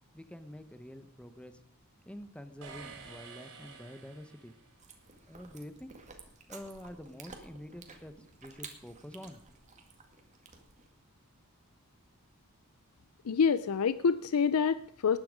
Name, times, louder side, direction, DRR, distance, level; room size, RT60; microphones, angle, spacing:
voice 1, 0.1-1.6 2.1-4.5 5.3-5.9 6.5-8.1 8.4-9.4, equal, 5° left, 10 dB, 0.8 m, -47 dB
sound 1, 2.6-4.8, right 5 dB, 75° right, 3.3 m, -50 dB
Chewing mastication, 4.8-10.9, right 4 dB, 35° right, 2.0 m, -53 dB
voice 2, 13.2-15.2, left 6 dB, 70° left, 15 dB, 0.5 m, -27 dB
19.5 x 9.6 x 5.1 m, 0.66 s
head